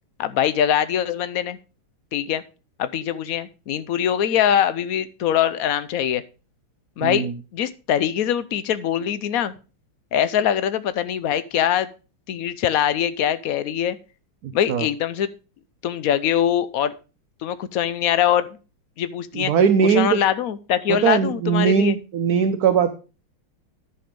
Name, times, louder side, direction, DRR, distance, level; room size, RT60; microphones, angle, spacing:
voice 1, 0.2-1.6 2.1-2.4 2.8-6.2 7.0-7.3 7.5-9.5 10.1-11.9 12.3-14.0 14.5-15.3 15.8-16.9 17.4-18.5 19.0-19.5 19.8-22.0, left 10 dB, 75° left, 15 dB, 0.8 m, -22 dB
voice 2, 7.0-7.3 14.4-14.8 19.3-20.2 20.9-22.9, right 7 dB, 60° right, 9 dB, 1.1 m, -20 dB
10.5 x 7.1 x 5.1 m, 0.33 s
omnidirectional pair, 2.2 m